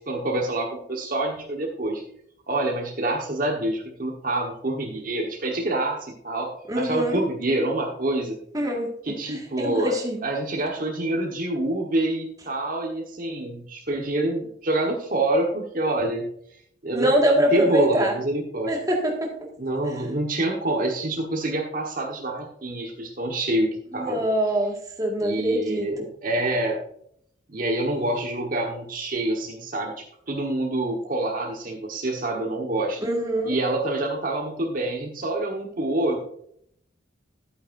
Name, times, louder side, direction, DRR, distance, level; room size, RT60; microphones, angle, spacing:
voice 1, 0.1-2.0 2.5-8.3 9.0-9.9 10.2-16.3 16.8-17.1 17.5-18.8 19.6-24.2 25.2-26.8 27.5-33.0 33.4-36.2, right 1 dB, 45° right, 0 dB, 1.3 m, -26 dB
voice 2, 6.7-7.3 8.5-8.9 9.3-10.2 16.9-18.2 18.7-19.5 19.9-20.0 23.9-26.1 33.0-33.6, equal, 20° right, 0 dB, 1.8 m, -24 dB
11.0 x 9.1 x 2.6 m, 0.67 s
head